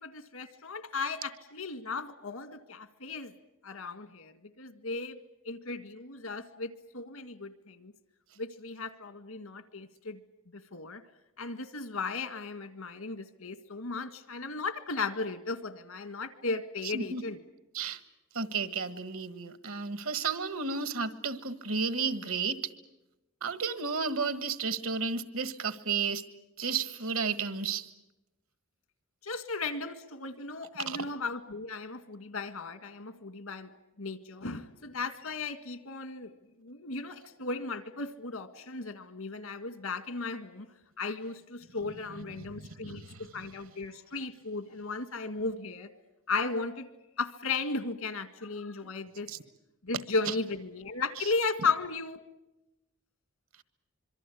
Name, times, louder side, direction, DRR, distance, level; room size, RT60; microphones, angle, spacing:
voice 1, 0.0-3.3 3.6-5.2 5.5-7.9 8.4-10.2 10.5-11.0 11.4-17.4 29.2-33.7 34.0-36.3 36.6-40.7 41.0-45.9 46.3-46.9 47.2-49.3 49.8-52.2, left 4 dB, 80° left, 11 dB, 1.9 m, -36 dB
voice 2, 18.3-22.6 23.4-26.2 26.6-27.9 30.9-31.0 42.2-43.2 49.3-49.4 50.3-50.4 51.2-51.3, right 5 dB, 75° right, 13 dB, 1.5 m, -33 dB
26.0 x 23.5 x 8.5 m, 0.95 s
head